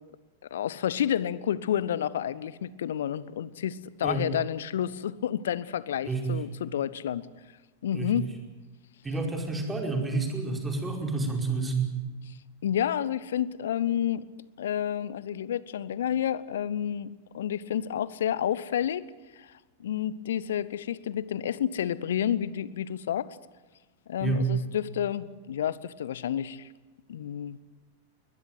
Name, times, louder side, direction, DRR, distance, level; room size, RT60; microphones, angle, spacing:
voice 1, 0.5-7.3 7.8-8.3 12.6-14.3 14.6-19.1 19.4-19.5 19.8-23.4 24.1-26.7 27.1-27.6, left 10 dB, 60° left, 20 dB, 0.8 m, -30 dB
voice 2, 6.0-6.4 7.9-8.1 9.0-11.9 24.2-24.5, right 3 dB, 15° right, 3 dB, 5.0 m, -29 dB
22.0 x 20.5 x 9.3 m, 1.2 s
figure-of-eight pair, 90°, 0 cm